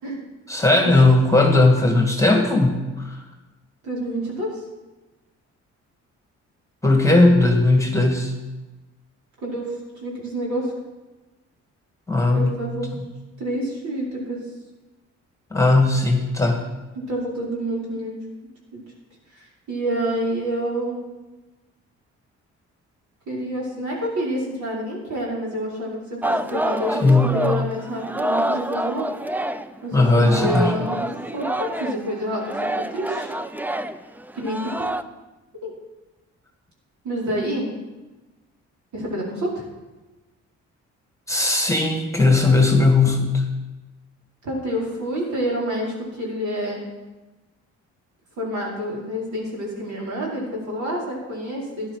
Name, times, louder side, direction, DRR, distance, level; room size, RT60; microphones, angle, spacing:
voice 1, 0.5-3.2 6.8-8.3 12.1-12.6 12.9-13.1 15.5-16.6 27.0-27.4 29.9-30.7 41.3-43.4, left 2 dB, 10° left, 3 dB, 1.7 m, -17 dB
voice 2, 3.8-4.5 9.4-9.7 10.0-10.7 12.3-12.9 13.4-14.4 17.1-18.1 18.7-18.8 19.3-21.0 23.3-29.1 29.8-31.1 31.3-33.3 34.3-34.9 35.6-35.7 37.0-37.7 38.9-39.6 44.4-46.8 48.4-52.0, equal, 70° right, -4 dB, 5.0 m, -28 dB
Singing, 26.2-29.8 30.1-35.0, right 1 dB, 5° right, 0.5 m, -27 dB
13.0 x 10.5 x 4.7 m, 1.1 s
cardioid pair, 90°, 30 cm